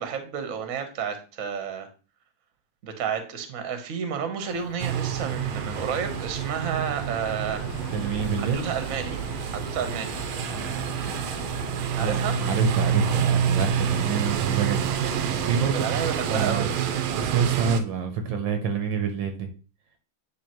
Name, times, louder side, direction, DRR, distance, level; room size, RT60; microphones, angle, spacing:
voice 1, 0.0-1.9 2.8-7.7 8.4-9.2 9.5-10.1 11.9-12.4 15.6-16.7, right 7 dB, 50° right, 7 dB, 1.1 m, -31 dB
sound 1, 4.5-15.7, left 9 dB, 85° left, 0.9 m, -41 dB
sound 2, 4.8-17.8, right 8 dB, 90° right, 1.5 m, -28 dB
voice 2, 7.9-8.7 10.5-10.7 12.0-15.8 16.3-16.7 17.1-19.5, right 6 dB, 70° right, 5 dB, 1.4 m, -27 dB
9.7 x 3.3 x 2.9 m, 0.35 s
omnidirectional pair, 2.3 m